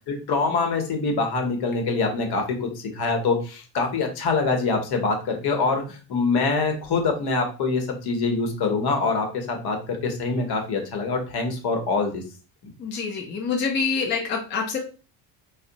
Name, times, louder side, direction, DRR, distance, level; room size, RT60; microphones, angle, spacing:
voice 1, 0.1-12.2, left 4 dB, 50° left, 4 dB, 0.8 m, -25 dB
voice 2, 12.8-14.8, left 5 dB, 25° left, 1 dB, 0.4 m, -26 dB
2.7 x 2.1 x 2.5 m, 0.35 s
supercardioid pair, 90°, 48 cm